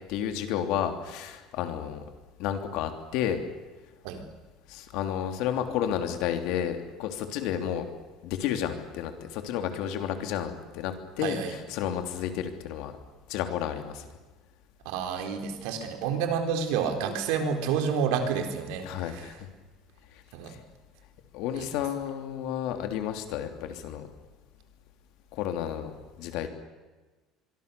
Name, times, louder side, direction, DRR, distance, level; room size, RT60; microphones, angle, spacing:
voice 1, 0.1-2.0 2.4-3.4 4.7-7.9 8.2-12.9 13.3-14.1 18.8-19.5 20.5-20.6 21.3-24.1 25.3-26.5, left 9 dB, 65° left, 7 dB, 3.1 m, -31 dB
voice 2, 11.2-11.5 14.9-19.2 20.3-20.6 21.6-21.8, right 6 dB, 80° right, 6 dB, 3.8 m, -29 dB
25.5 x 23.0 x 6.9 m, 1.3 s
cardioid pair, 165°, 0 cm